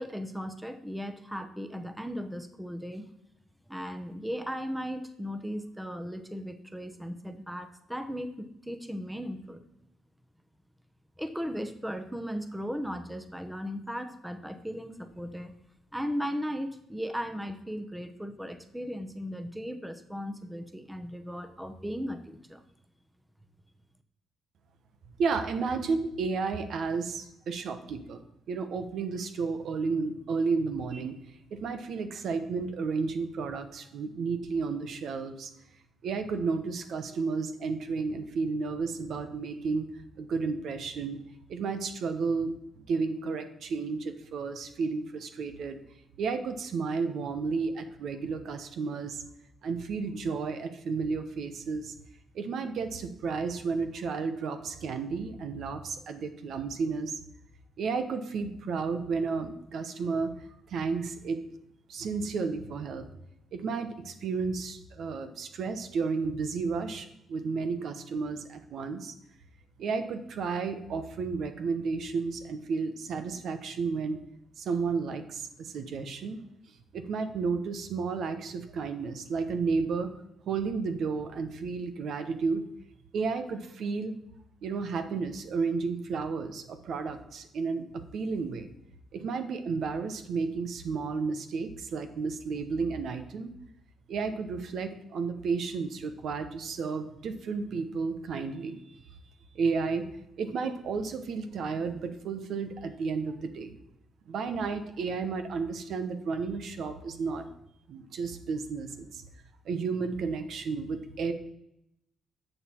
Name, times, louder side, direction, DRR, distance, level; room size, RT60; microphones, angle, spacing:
voice 1, 0.0-3.0 3.7-9.6 11.2-15.6 15.9-22.6, equal, 5° right, 9 dB, 1.0 m, -37 dB
voice 2, 25.2-28.2 28.5-31.2 31.5-35.5 36.0-39.9 40.2-41.2 41.5-45.8 46.2-49.2 49.6-51.9 52.3-57.2 57.8-60.3 60.7-61.4 61.9-63.0 63.5-69.2 69.8-74.2 74.6-76.4 76.9-80.1 80.5-82.6 83.1-84.1 84.6-88.7 89.1-93.5 94.1-98.8 99.5-100.0 100.4-103.7 104.3-107.4 107.9-109.2 109.6-111.3, right 4 dB, 65° right, 9 dB, 1.1 m, -32 dB
11.0 x 6.8 x 4.5 m, 0.81 s
cardioid pair, 90°, 0 cm